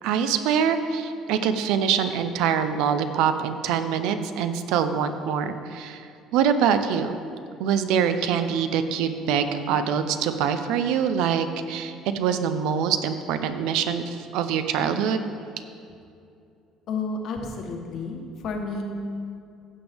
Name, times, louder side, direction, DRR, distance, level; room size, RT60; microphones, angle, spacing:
voice 1, 0.0-7.1 7.6-15.3, right 7 dB, 75° right, 9 dB, 0.6 m, -24 dB
voice 2, 16.9-18.8, left 3 dB, 50° left, 3 dB, 1.1 m, -31 dB
15.0 x 7.0 x 3.5 m, 2.5 s
cardioid pair, 165°, 0 cm